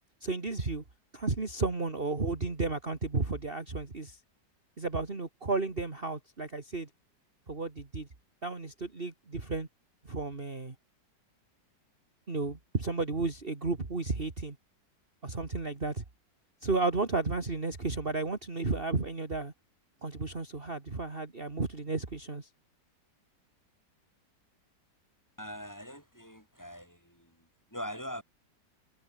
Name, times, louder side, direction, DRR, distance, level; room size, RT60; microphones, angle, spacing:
voice 1, 0.2-0.8 1.1-4.2 4.8-6.9 7.5-8.1 8.4-9.7 10.0-10.7 12.3-14.6 15.2-16.0 16.6-19.5 20.0-22.5, right 3 dB, 30° right, 2.6 m, -33 dB
voice 2, 25.4-28.2, equal, 10° left, 6.0 m, -42 dB
omnidirectional pair, 2.0 m